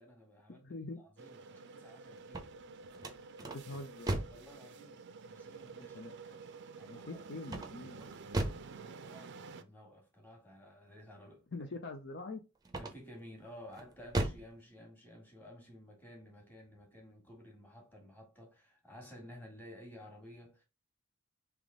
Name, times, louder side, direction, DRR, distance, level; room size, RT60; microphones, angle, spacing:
voice 1, 0.0-2.5 4.3-6.0 6.3-7.2 7.5-7.7 8.7-11.6 12.8-20.6, equal, 10° left, 1.6 m, -54 dB
voice 2, 0.6-1.0 3.4-4.2 5.8-6.1 6.9-8.1 11.5-12.4, left 2 dB, 55° left, 0.7 m, -44 dB
sound 1, 1.2-9.6, right 4 dB, 55° right, 0.5 m, -50 dB
sound 2, 2.2-4.5 7.4-8.7 12.6-13.2 13.7-14.5, right 1 dB, 20° right, 0.7 m, -37 dB
3.5 x 3.0 x 3.6 m
head